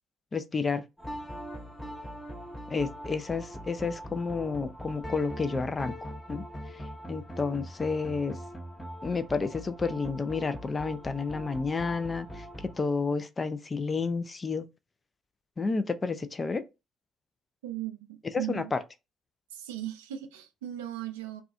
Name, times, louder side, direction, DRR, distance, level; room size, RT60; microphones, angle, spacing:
voice 1, 0.3-0.8 2.7-6.4 7.1-8.4 9.0-12.5 12.8-14.7 15.6-16.6 18.5-18.8, left 4 dB, 30° left, 0.4 m, -30 dB
sound 1, 1.0-12.8, equal, 15° left, 0.8 m, -42 dB
voice 2, 17.6-18.7 19.5-21.4, right 12 dB, 80° right, 0.3 m, -37 dB
2.3 x 2.3 x 2.4 m
figure-of-eight pair, 45°, 0 cm